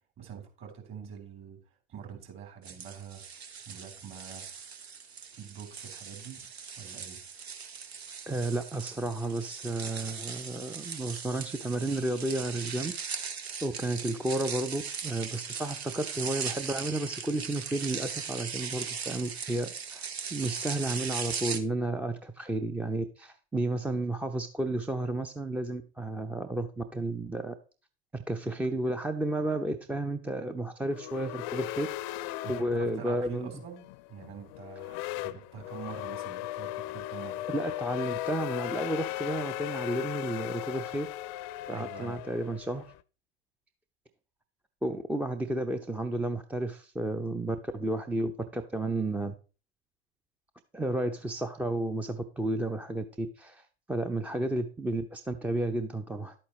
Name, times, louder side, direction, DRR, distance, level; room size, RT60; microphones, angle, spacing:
voice 1, 0.2-1.6 1.9-3.2 3.7-4.5 5.3-6.4 6.8-7.2 32.4-37.5 41.7-42.2, right 8 dB, 40° right, 3 dB, 3.6 m, -45 dB
sound 1, 2.6-21.6, right 6 dB, 80° right, 1.1 m, -39 dB
voice 2, 8.3-13.3 13.6-27.5 28.3-32.2 32.5-33.5 37.5-41.1 41.7-42.8 44.8-49.3 50.7-53.6 53.9-56.3, right 1 dB, 5° right, 8 dB, 0.5 m, -32 dB
sound 2, 30.9-43.0, left 16 dB, 50° left, 0.5 m, -37 dB
11.0 x 8.5 x 3.1 m, 0.35 s
hypercardioid pair, 90°, 32 cm